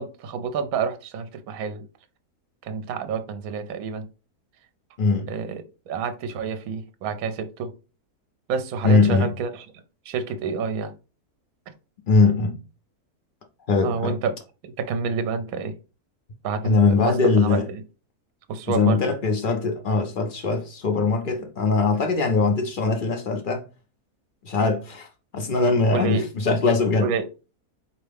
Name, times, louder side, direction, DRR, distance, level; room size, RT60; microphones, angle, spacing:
voice 1, 0.0-1.8 2.6-4.1 5.3-7.7 8.5-9.7 10.1-10.9 13.8-14.3 14.6-15.7 16.4-17.2 17.4-17.6 18.5-19.0 25.9-26.2 27.0-27.3, right 5 dB, 70° right, 1.0 m, -28 dB
voice 2, 5.0-5.3 8.8-9.3 12.1-12.6 13.7-14.2 16.6-17.7 18.7-23.6 24.4-25.1 25.3-27.1, left 3 dB, 55° left, 0.6 m, -21 dB
4.5 x 2.8 x 3.4 m
omnidirectional pair, 1.7 m